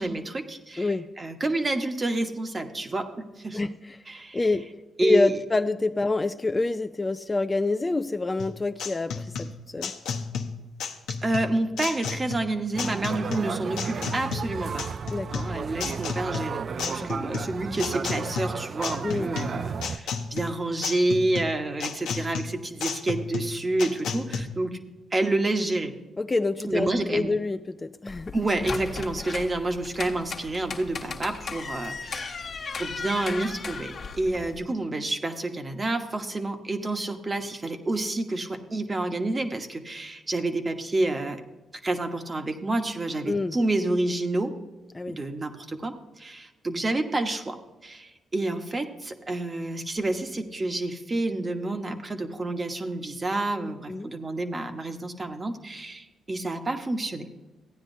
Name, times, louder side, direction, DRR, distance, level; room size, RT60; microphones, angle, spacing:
voice 1, 0.0-3.6 4.1-4.4 5.0-5.4 11.2-14.9 15.3-24.8 25.1-25.9 26.6-27.3 28.3-41.4 41.8-44.5 45.1-47.6 47.8-57.3, right 2 dB, 30° right, 6 dB, 1.1 m, -29 dB
voice 2, 3.5-4.0 4.3-4.7 5.0-9.9 15.1-15.4 17.0-17.1 19.0-19.3 26.2-28.3 43.3-43.6 44.9-45.2 53.9-54.1, left 3 dB, 25° left, 9 dB, 0.4 m, -27 dB
sound 1, 8.4-24.4, left 5 dB, 85° left, 0.9 m, -33 dB
sound 2, 12.7-20.0, right 6 dB, 55° right, 0.4 m, -33 dB
sound 3, 28.1-34.6, left 4 dB, 50° left, 1.3 m, -36 dB
15.0 x 9.6 x 2.7 m, 1.2 s
cardioid pair, 70°, 0 cm